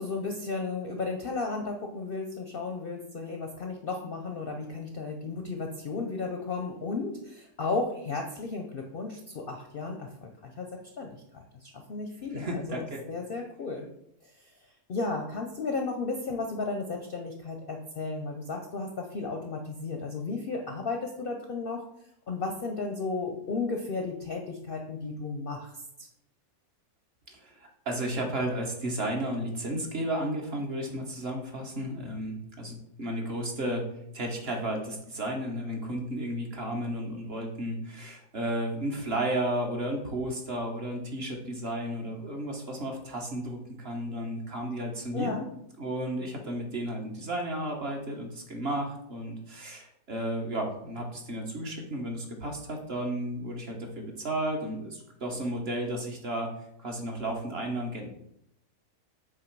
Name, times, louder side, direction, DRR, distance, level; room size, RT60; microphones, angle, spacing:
voice 1, 0.0-10.3 10.6-10.7 11.0-13.9 14.9-21.8 22.3-25.7 26.0-26.1 45.1-45.5, left 3 dB, 55° left, 3 dB, 0.6 m, -34 dB
voice 2, 12.3-13.0 27.3-33.9 34.1-45.3 45.8-58.1, right 1 dB, 45° right, 1 dB, 1.1 m, -33 dB
7.4 x 3.1 x 4.6 m, 0.75 s
omnidirectional pair, 1.6 m